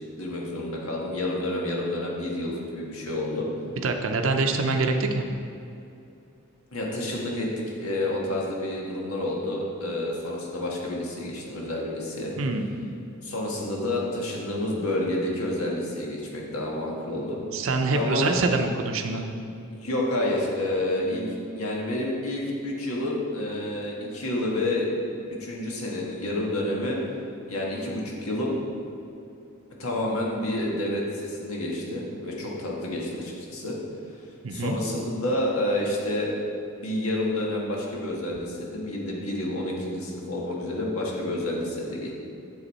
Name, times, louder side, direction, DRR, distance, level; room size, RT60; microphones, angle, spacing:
voice 1, 0.2-3.5 6.7-12.3 13.2-17.4 17.9-18.3 19.7-21.2 21.5-25.0 25.4-27.0 27.5-28.5 29.8-33.8 34.5-36.3 36.8-42.1, left 1 dB, 85° left, -2 dB, 1.6 m, -29 dB
voice 2, 3.8-5.3 12.4-12.7 17.5-19.3 34.4-34.8, right 3 dB, 65° right, 4 dB, 0.6 m, -25 dB
8.0 x 6.5 x 4.2 m, 2.6 s
head